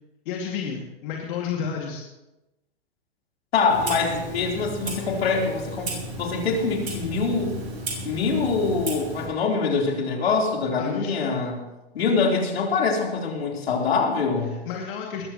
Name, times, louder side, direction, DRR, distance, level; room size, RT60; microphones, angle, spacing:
voice 1, 0.3-2.0 10.8-11.1 14.7-15.2, left 7 dB, 55° left, -1 dB, 2.5 m, -31 dB
voice 2, 3.5-5.9 6.2-7.6 8.0-11.6 11.9-14.6, left 4 dB, 75° left, 0 dB, 3.9 m, -24 dB
Clock, 3.7-9.3, right 2 dB, 85° right, 5.8 m, -34 dB
20.5 x 14.5 x 3.1 m, 0.99 s
hypercardioid pair, 120°, 31 cm